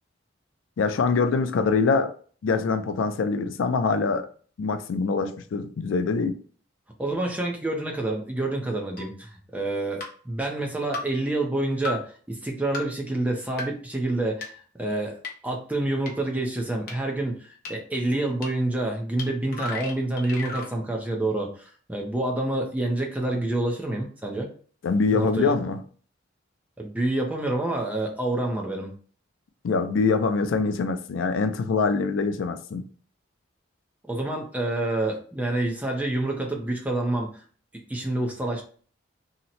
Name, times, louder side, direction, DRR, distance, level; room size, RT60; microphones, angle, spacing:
voice 1, 0.8-2.1 2.4-4.3 4.6-6.4 24.8-25.8 29.6-32.9, left 4 dB, 80° left, 0.4 m, -24 dB
voice 2, 7.0-15.2 15.4-24.5 25.1-25.5 26.8-28.9 34.1-37.4 37.9-38.6, right 2 dB, 10° right, 0.5 m, -28 dB
sound 1, 9.0-9.1 10.0-10.1 10.9-11.0 11.8-11.9 12.7-12.8 13.6-13.7 14.4-14.5 15.2-15.3 16.1-16.2 16.9-17.0 17.6-17.7 18.4-18.5 19.2-19.3 19.5-20.7, left 3 dB, 50° left, 0.8 m, -33 dB
2.8 x 2.1 x 4.0 m
head